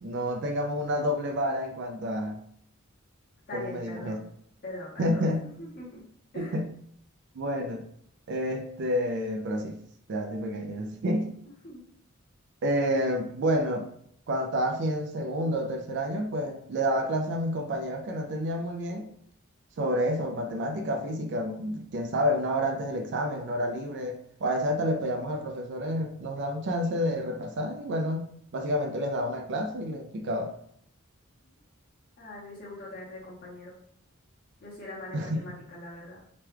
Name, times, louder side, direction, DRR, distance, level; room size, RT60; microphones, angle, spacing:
voice 1, 0.0-2.4 3.5-4.2 5.0-5.5 6.4-6.7 7.3-7.8 8.3-9.8 10.1-11.3 12.6-13.9 14.3-19.1 19.8-30.5 35.1-35.4, equal, 55° right, 3 dB, 0.4 m, -29 dB
voice 2, 3.5-4.2 4.6-6.0 6.3-6.6 11.6-11.8 32.2-33.7 34.6-36.2, left 1 dB, 45° left, -6 dB, 0.8 m, -42 dB
3.0 x 2.3 x 3.2 m, 0.65 s
head